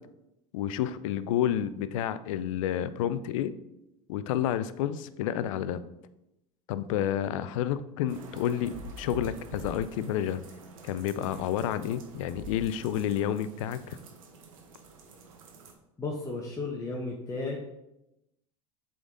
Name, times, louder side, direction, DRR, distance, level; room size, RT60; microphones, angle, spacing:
voice 1, 0.5-3.5 4.1-5.8 6.7-10.4 10.8-14.0, left 10 dB, 75° left, 14 dB, 0.5 m, -30 dB
sound 1, 8.1-15.7, right 2 dB, 80° right, 1.1 m, -47 dB
voice 2, 16.0-17.6, left 3 dB, 20° left, -2 dB, 1.1 m, -34 dB
7.8 x 3.9 x 3.8 m, 0.89 s
hypercardioid pair, 85°, 17 cm